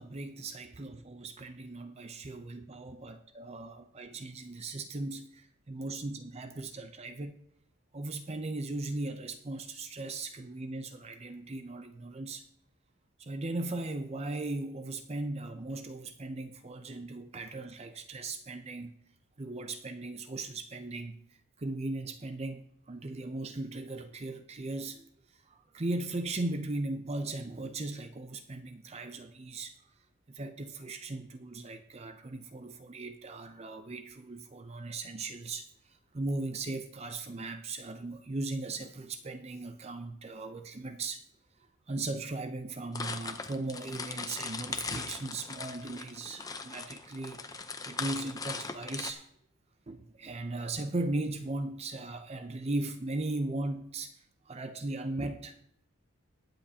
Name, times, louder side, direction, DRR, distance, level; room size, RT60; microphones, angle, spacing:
voice 1, 0.0-7.4 7.9-12.4 13.2-18.9 19.4-21.2 21.6-25.0 25.5-29.7 30.3-35.7 36.1-41.2 41.9-49.3 49.9-55.6, right 2 dB, 30° right, 0.5 m, -38 dB
sound 1, 42.9-49.1, left 4 dB, 15° left, 0.6 m, -39 dB
20.5 x 7.8 x 2.8 m
head